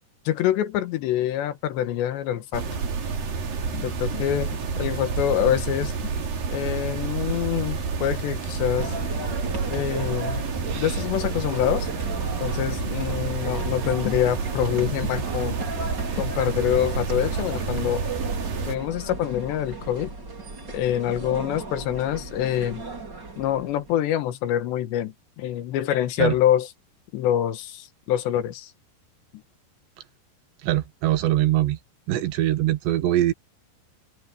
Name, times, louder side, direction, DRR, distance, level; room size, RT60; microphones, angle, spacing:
voice 1, 0.3-2.6 3.7-4.5 4.8-5.9 6.5-8.9 9.7-10.4 10.7-11.9 12.4-15.6 16.2-18.1 18.7-20.1 20.7-22.8 23.4-26.7 27.1-28.7, left 11 dB, 85° left, 3.6 m, -25 dB
sound 1, 2.5-18.8, right 5 dB, 55° right, 5.0 m, -29 dB
sound 2, 8.8-23.9, right 3 dB, 25° right, 4.6 m, -36 dB
voice 2, 30.6-31.8 32.1-33.3, right 14 dB, 85° right, 3.7 m, -22 dB
open air
omnidirectional pair, 4.9 m